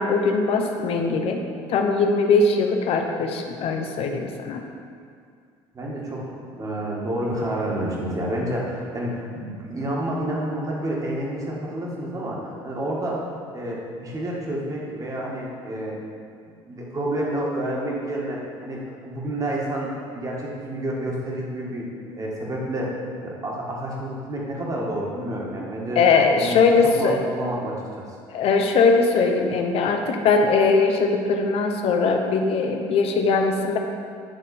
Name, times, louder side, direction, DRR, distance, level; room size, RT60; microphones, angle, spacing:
voice 1, 0.0-1.4 1.7-4.6 26.0-27.2 28.3-33.8, left 4 dB, 60° left, 4 dB, 0.7 m, -20 dB
voice 2, 5.7-13.3 13.5-16.0 16.5-26.0 26.4-26.6 26.9-27.8, right 1 dB, 30° right, -3 dB, 1.6 m, -29 dB
9.9 x 3.5 x 4.2 m, 2.3 s
cardioid pair, 105°, 11 cm